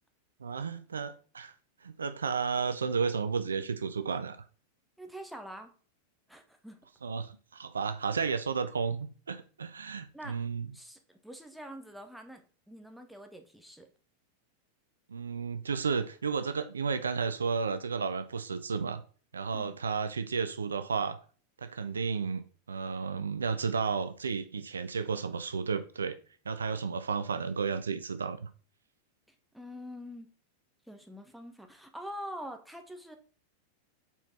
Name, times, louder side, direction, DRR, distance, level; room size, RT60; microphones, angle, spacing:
voice 1, 0.4-1.5 1.8-4.4 7.0-10.7 15.1-19.0 19.3-21.2 21.6-26.2 26.5-28.5, right 5 dB, 70° right, 0.5 m, -32 dB
voice 2, 5.0-5.7 6.3-6.8 10.1-10.4 10.7-12.4 12.7-13.9 19.5-19.8 29.5-30.3 30.9-33.2, equal, ahead, 1.1 m, -45 dB
5.5 x 4.6 x 4.3 m
figure-of-eight pair, 90°, 0 cm